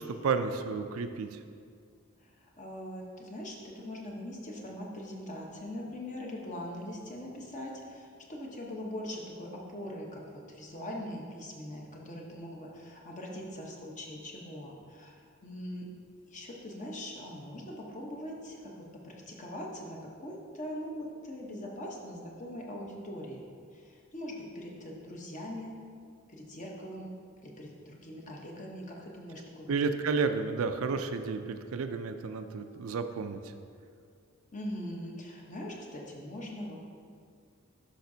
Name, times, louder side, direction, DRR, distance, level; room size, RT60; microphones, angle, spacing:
voice 1, 0.0-1.4 29.7-33.4, right 4 dB, 75° right, 8 dB, 0.4 m, -31 dB
voice 2, 2.2-15.9 16.3-23.4 23.7-25.7 26.3-27.1 27.4-29.7 34.5-36.8, left 1 dB, 35° left, -1 dB, 1.0 m, -42 dB
10.0 x 5.8 x 2.7 m, 2.2 s
head